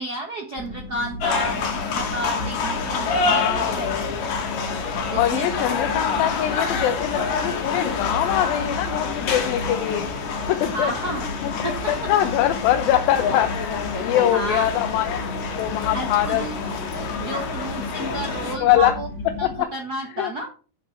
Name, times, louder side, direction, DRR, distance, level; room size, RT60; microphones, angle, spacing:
voice 1, 0.0-4.1 5.1-5.5 10.6-11.3 11.6-12.1 13.9-14.7 15.9-16.6 17.2-19.1 19.4-20.5, right 2 dB, 75° right, 2 dB, 0.9 m, -31 dB
sound 1, 0.5-19.6, left 2 dB, 45° left, 1.2 m, -34 dB
sound 2, 1.2-18.6, left 5 dB, 70° left, 3.4 m, -28 dB
voice 2, 3.3-4.2 5.1-10.1 10.5-10.9 11.4-13.5 14.0-15.2 15.5-16.4 18.6-19.0 19.4-19.7 20.2-20.3, left 12 dB, 85° left, 7 dB, 2.6 m, -23 dB
8.5 x 7.3 x 5.8 m, 0.38 s
omnidirectional pair, 4.1 m